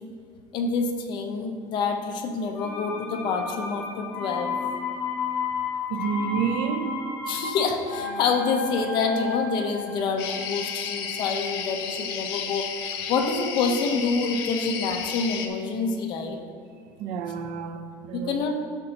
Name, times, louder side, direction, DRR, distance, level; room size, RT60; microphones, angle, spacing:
voice 1, 0.5-4.6 7.3-12.7 13.1-16.4 18.1-18.5, left 4 dB, 40° left, 3 dB, 0.9 m, -27 dB
sound 1, 2.5-12.3 12.6-12.7, left 5 dB, 60° left, 2.0 m, -33 dB
voice 2, 5.9-7.0 17.0-18.5, right 7 dB, 55° right, 8 dB, 0.7 m, -29 dB
sound 2, 10.2-15.5, left 7 dB, 85° left, 0.9 m, -32 dB
12.0 x 6.4 x 2.9 m, 2.3 s
cardioid pair, 170°, 12 cm